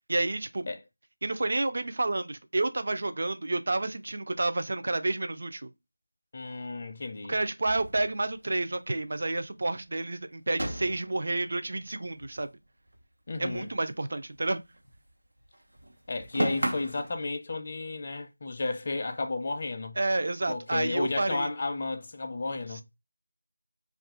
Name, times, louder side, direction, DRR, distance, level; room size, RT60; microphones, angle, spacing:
voice 1, 0.1-0.7 1.2-5.7 7.3-12.5 13.4-14.6 20.0-21.5 22.7-22.8, right 2 dB, 45° right, 0.3 m, -30 dB
voice 2, 6.3-7.4 13.3-13.7 16.1-20.0 20.5-22.8, left 3 dB, 30° left, 0.4 m, -33 dB
sound 1, 7.7-9.0 9.3-9.4 9.7-9.9 10.5-13.0 13.3-15.1 15.4-17.1, right 1 dB, 85° right, 0.9 m, -36 dB
2.7 x 2.4 x 3.5 m
figure-of-eight pair, 175°, 0 cm